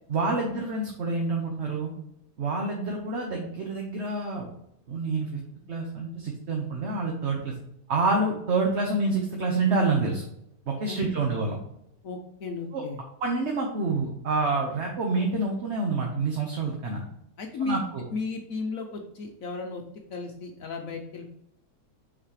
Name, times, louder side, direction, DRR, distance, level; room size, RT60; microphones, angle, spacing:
voice 1, 0.1-1.9 2.4-4.5 4.9-5.4 5.7-7.5 7.9-10.3 10.7-11.6 12.7-12.8 13.2-17.0 17.6-18.0, right 3 dB, 45° right, 1 dB, 1.1 m, -27 dB
voice 2, 10.9-11.2 12.0-13.0 17.4-17.8 18.1-19.8 20.1-21.3, left 3 dB, 60° left, 3 dB, 1.1 m, -34 dB
6.1 x 4.9 x 4.8 m, 0.77 s
omnidirectional pair, 1.8 m